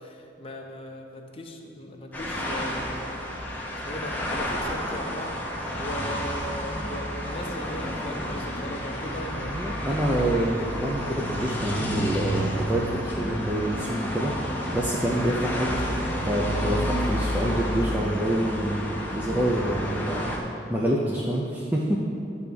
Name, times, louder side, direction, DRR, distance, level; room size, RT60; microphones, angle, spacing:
voice 1, 0.0-3.2 3.8-5.4 5.8-9.6 15.2-15.5, left 1 dB, 30° left, 2 dB, 0.7 m, -38 dB
sound 1, 2.1-20.4, equal, 10° left, 0.9 m, -30 dB
voice 2, 9.5-15.7 16.2-20.4 20.7-22.0, right 1 dB, 10° right, -4 dB, 0.5 m, -27 dB
10.5 x 3.5 x 6.8 m, 2.9 s
head